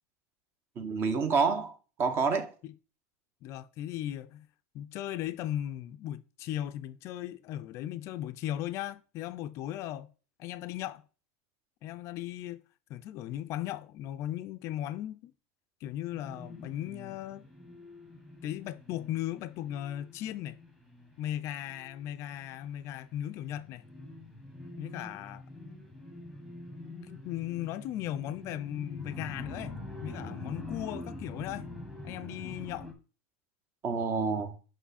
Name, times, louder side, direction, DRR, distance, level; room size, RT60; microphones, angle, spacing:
voice 1, 0.8-2.5 33.8-34.5, right 5 dB, 30° right, 0.8 m, -28 dB
voice 2, 3.4-4.5 4.7-10.1 10.4-11.0 11.8-12.6 12.9-15.3 15.8-17.4 18.4-20.6 21.2-23.8 24.8-25.4 27.1-31.7 32.0-32.9, left 12 dB, 40° left, 0.4 m, -37 dB
sound 1, 16.1-23.1 23.4-32.9, left 2 dB, 5° right, 1.2 m, -45 dB
5.9 x 5.4 x 4.1 m
supercardioid pair, 160°, 8 cm